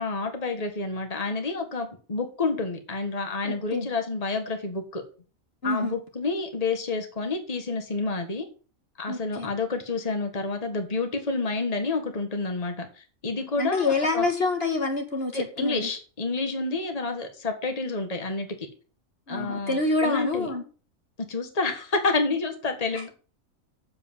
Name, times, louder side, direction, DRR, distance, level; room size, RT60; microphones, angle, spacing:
voice 1, 0.0-5.0 5.6-8.5 9.0-14.3 15.3-18.5 19.3-20.5 21.3-23.1, left 3 dB, 30° left, 5 dB, 1.7 m, -29 dB
voice 2, 3.4-3.9 5.6-5.9 9.1-9.6 13.6-15.9 19.3-20.6 22.9-23.0, left 3 dB, 45° left, 4 dB, 1.8 m, -27 dB
7.8 x 7.7 x 7.2 m, 0.38 s
omnidirectional pair, 1.4 m